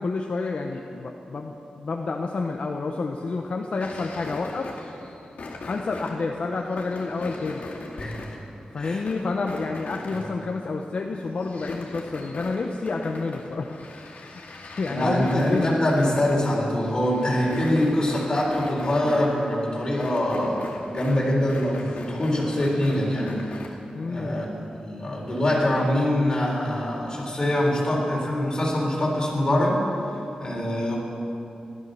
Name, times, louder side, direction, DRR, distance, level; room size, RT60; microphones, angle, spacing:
voice 1, 0.0-4.7 5.7-7.7 8.7-13.8 14.1-15.7 23.9-24.4, left 3 dB, 50° left, 2 dB, 0.9 m, -29 dB
sound 1, 3.8-10.7 11.1-23.7, left 3 dB, 80° left, 2.4 m, -40 dB
voice 2, 14.8-23.3 24.1-29.8 30.4-31.0, left 1 dB, 30° left, -4 dB, 4.0 m, -24 dB
16.5 x 12.5 x 6.9 m, 2.7 s
wide cardioid pair, 160°, 3 cm